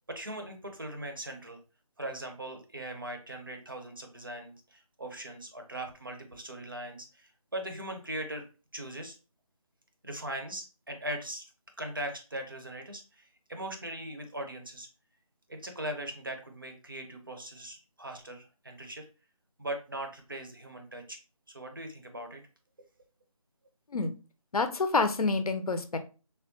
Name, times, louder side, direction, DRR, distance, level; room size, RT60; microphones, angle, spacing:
voice 1, 0.1-1.6 2.0-8.5 8.7-9.2 10.0-11.5 11.8-14.9 15.5-19.1 19.6-21.2 21.5-22.4, right 1 dB, 35° right, 4 dB, 0.5 m, -40 dB
voice 2, 24.5-26.0, left 3 dB, 80° left, 8 dB, 0.6 m, -28 dB
3.4 x 2.2 x 2.6 m, 0.33 s
figure-of-eight pair, 175°, 19 cm